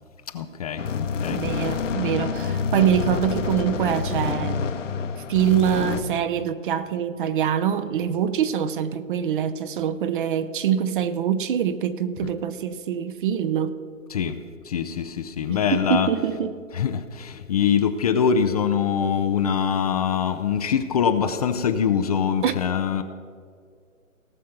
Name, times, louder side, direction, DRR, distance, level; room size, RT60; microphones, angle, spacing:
voice 1, 0.3-1.4 12.2-12.3 14.1-16.1 16.7-23.0, left 7 dB, 30° left, 9 dB, 0.5 m, -24 dB
sound 1, 0.8-6.0, left 5 dB, 65° left, 1.2 m, -27 dB
voice 2, 1.3-4.7 5.3-13.7 15.5-16.6 22.4-22.6, right 9 dB, 40° right, 13 dB, 0.7 m, -24 dB
18.0 x 6.3 x 5.8 m, 2.1 s
hypercardioid pair, 135°, 39 cm